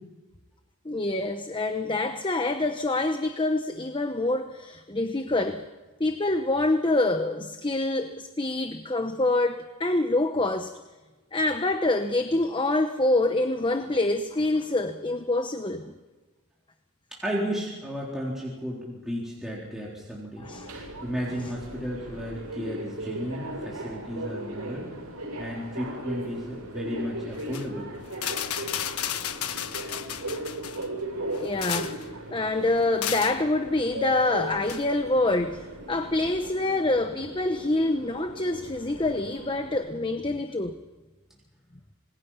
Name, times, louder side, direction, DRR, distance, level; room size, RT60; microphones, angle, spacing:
voice 1, 0.8-5.6 6.0-10.7 11.3-15.9 20.4-20.7 31.4-40.7, left 2 dB, 20° left, 7 dB, 0.9 m, -26 dB
voice 2, 17.1-20.5 21.0-24.9 25.4-27.9, equal, ahead, -5 dB, 3.7 m, -33 dB
Subway metro underground, 20.4-39.8, right 1 dB, 80° right, 7.5 m, -38 dB
sound 1, 27.4-27.7 28.1-30.9 31.3-32.1 33.0-33.4 34.7-34.8, left 10 dB, 85° left, 1.2 m, -33 dB
26.5 x 20.5 x 5.7 m, 1.2 s
head